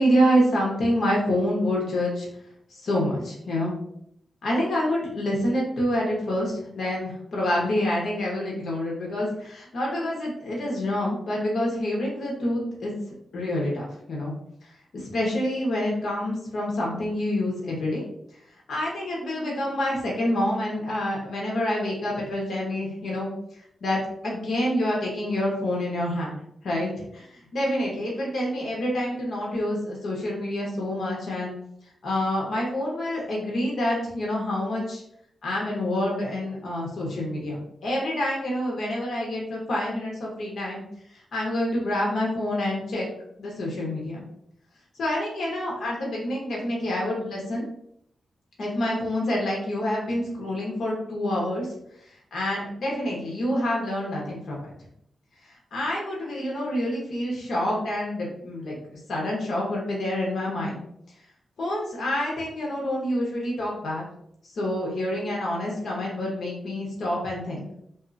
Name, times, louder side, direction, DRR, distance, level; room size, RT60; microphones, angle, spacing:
voice 1, 0.0-2.3 2.7-3.8 4.4-12.9 13.3-14.3 14.9-18.0 18.7-23.3 23.8-26.4 26.6-31.5 32.0-35.0 35.4-40.8 41.3-43.1 43.4-44.2 45.0-47.6 48.6-51.7 52.3-54.7 55.7-58.8 59.1-60.8 61.6-64.1 64.5-67.6, left 1 dB, 70° left, -3 dB, 0.9 m, -27 dB
2.6 x 2.4 x 2.5 m, 0.72 s
cardioid pair, 95°, 0 cm